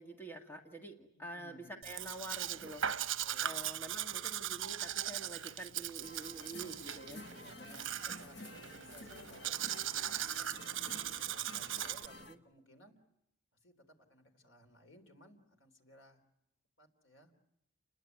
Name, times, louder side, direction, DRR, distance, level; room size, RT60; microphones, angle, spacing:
voice 1, 0.0-2.9 3.4-7.2 12.3-12.4, right 1 dB, 10° left, 3 dB, 1.9 m, -47 dB
voice 2, 1.1-1.7 3.2-3.7 7.3-12.9 13.6-16.2 16.8-17.3, equal, 75° left, 5 dB, 3.8 m, -60 dB
Domestic sounds home sounds, 1.8-12.1, right 10 dB, 75° right, 1.0 m, -39 dB
sound 1, 6.0-12.4, left 1 dB, 55° left, 1.3 m, -51 dB
30.0 x 21.0 x 9.5 m, 0.81 s
head